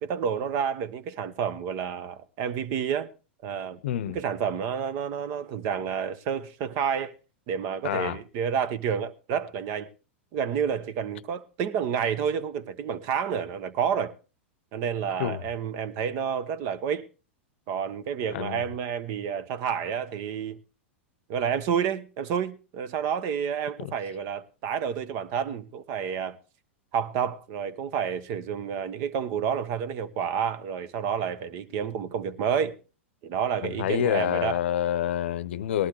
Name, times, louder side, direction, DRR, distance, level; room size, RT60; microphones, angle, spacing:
voice 1, 0.0-3.1 3.4-3.8 4.1-7.1 7.5-9.9 10.3-14.1 14.7-17.1 17.7-20.6 21.3-26.4 26.9-32.8 33.2-34.6, right 7 dB, 50° right, 1.1 m, -29 dB
voice 2, 3.8-4.2 7.8-8.2 15.2-15.4 18.3-18.6 23.8-23.9 33.6-35.9, left 11 dB, 70° left, 0.6 m, -27 dB
18.5 x 11.5 x 3.1 m
hypercardioid pair, 110°, 7 cm